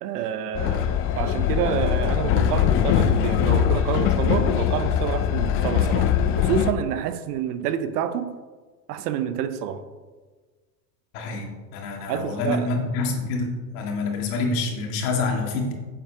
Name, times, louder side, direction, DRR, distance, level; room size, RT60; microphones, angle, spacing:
voice 1, 0.0-8.3 8.9-9.8 12.1-12.7, right 9 dB, 65° right, 0.8 m, -28 dB
Train, 0.5-6.7, left 9 dB, 30° left, 0.3 m, -22 dB
voice 2, 11.1-11.5 11.7-15.7, left 3 dB, 60° left, 2.1 m, -27 dB
9.4 x 7.4 x 2.8 m
hypercardioid pair, 100°, 50 cm